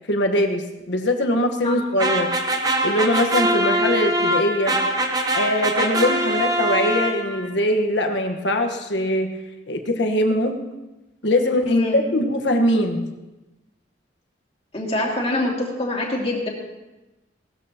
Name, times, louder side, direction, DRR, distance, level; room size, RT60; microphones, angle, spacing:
voice 1, 0.1-2.3 2.8-4.8 5.3-9.3 9.7-10.6 11.2-13.1, left 1 dB, 70° left, 4 dB, 1.4 m, -22 dB
sound 1, 2.0-7.5, right 1 dB, 20° right, 0.9 m, -23 dB
voice 2, 14.7-16.5, left 1 dB, 30° left, -2 dB, 2.5 m, -24 dB
18.5 x 13.0 x 3.0 m, 1.0 s
head